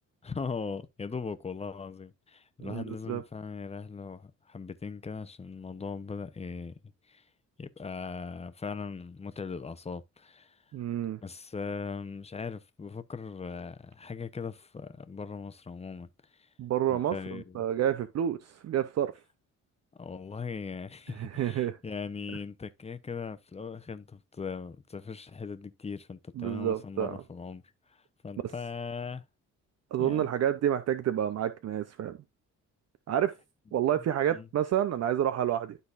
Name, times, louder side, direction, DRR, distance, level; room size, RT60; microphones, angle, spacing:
voice 1, 0.2-6.8 7.1-7.2 7.6-10.6 11.2-16.1 16.4-16.5 16.9-17.6 20.0-27.6 27.9-29.2 30.0-30.3 34.0-34.1 34.3-34.5, left 5 dB, 20° left, 0.8 m, -39 dB
voice 2, 2.6-3.2 10.7-11.2 16.6-19.1 21.2-21.8 26.4-27.1 29.9-32.2 33.1-33.3 33.7-35.8, right 10 dB, 55° right, 0.7 m, -29 dB
12.0 x 4.1 x 2.5 m
cardioid pair, 90°, 30 cm